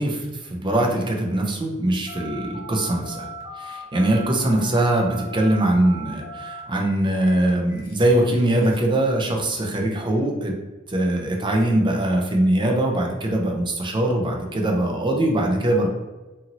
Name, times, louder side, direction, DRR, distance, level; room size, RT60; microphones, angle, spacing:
voice 1, 0.0-3.3 3.6-10.5 10.9-15.9, right 1 dB, 25° right, 0 dB, 0.5 m, -22 dB
Telephone, 2.1-8.9, right 1 dB, 45° left, 0.8 m, -39 dB
2.7 x 2.6 x 2.8 m, 1.2 s
head